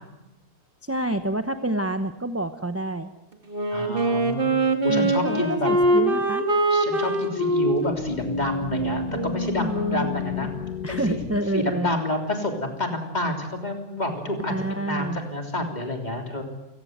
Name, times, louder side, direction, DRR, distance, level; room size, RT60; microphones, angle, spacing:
voice 1, 0.8-3.1 4.9-6.5 9.6-10.5 10.8-11.9 14.4-15.2, right 1 dB, 15° right, 8 dB, 0.7 m, -28 dB
Wind instrument woodwind instrument, 3.5-10.2, right 1 dB, 35° right, 2.6 m, -24 dB
voice 2, 3.7-5.7 6.7-10.5 10.9-11.2 11.5-16.4, left 1 dB, 25° left, 3 dB, 3.5 m, -29 dB
sound 1, 7.9-11.4, left 14 dB, 85° left, 1.6 m, -33 dB
29.5 x 17.0 x 8.1 m, 1.0 s
omnidirectional pair, 1.7 m